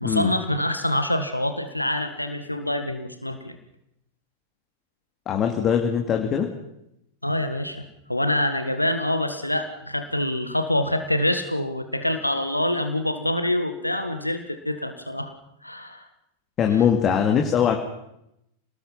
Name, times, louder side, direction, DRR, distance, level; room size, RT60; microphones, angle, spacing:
voice 1, 0.0-3.6 7.2-15.3 15.6-16.1 16.7-16.8, left 1 dB, 85° left, 8 dB, 1.6 m, -26 dB
voice 2, 5.3-6.5 16.6-17.8, left 8 dB, 30° left, 3 dB, 2.5 m, -21 dB
28.5 x 19.5 x 5.6 m, 0.80 s
figure-of-eight pair, 90°, 0 cm